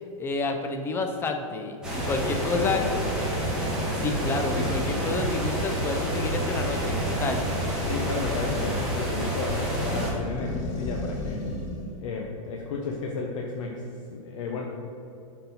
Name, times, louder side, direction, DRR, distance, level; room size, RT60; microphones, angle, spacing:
voice 1, 0.2-2.8 3.9-7.4, left 3 dB, 15° left, 5 dB, 0.5 m, -29 dB
sound 1, 1.8-10.1, right 1 dB, 5° right, 1.5 m, -28 dB
voice 2, 2.2-3.2 7.9-11.4 12.0-13.8 14.1-14.7, left 4 dB, 60° left, 0 dB, 0.8 m, -33 dB
sound 2, 2.5-12.0, left 1 dB, 40° left, 1.3 m, -36 dB
8.1 x 4.1 x 4.1 m, 2.7 s
hypercardioid pair, 145°, 18 cm